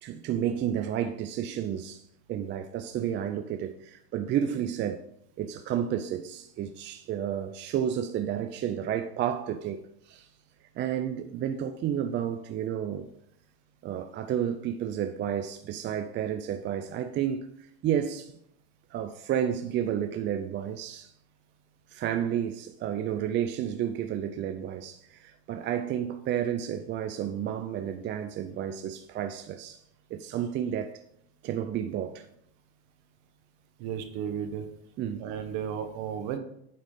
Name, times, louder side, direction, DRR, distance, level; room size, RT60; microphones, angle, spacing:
voice 1, 0.0-5.1 5.4-10.3 10.8-13.1 13.8-17.5 17.8-18.4 18.9-21.1 21.9-29.8 30.1-31.0 31.4-32.2 35.0-35.3, right 9 dB, 35° right, 0.5 m, -31 dB
voice 2, 33.8-34.7 35.2-36.4, right 8 dB, 60° right, 1.3 m, -33 dB
9.3 x 4.0 x 5.0 m
supercardioid pair, 120°, 33 cm